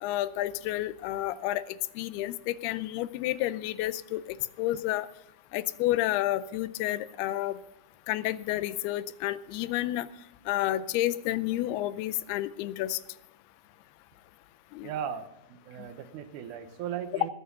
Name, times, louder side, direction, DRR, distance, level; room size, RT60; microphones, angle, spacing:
voice 1, 0.0-5.1 5.5-7.6 8.1-10.1 10.5-13.0 14.7-14.9, left 14 dB, 85° left, 16 dB, 2.6 m, -30 dB
voice 2, 14.8-17.3, right 9 dB, 70° right, 10 dB, 2.1 m, -37 dB
19.5 x 8.5 x 5.6 m, 0.87 s
omnidirectional pair, 4.5 m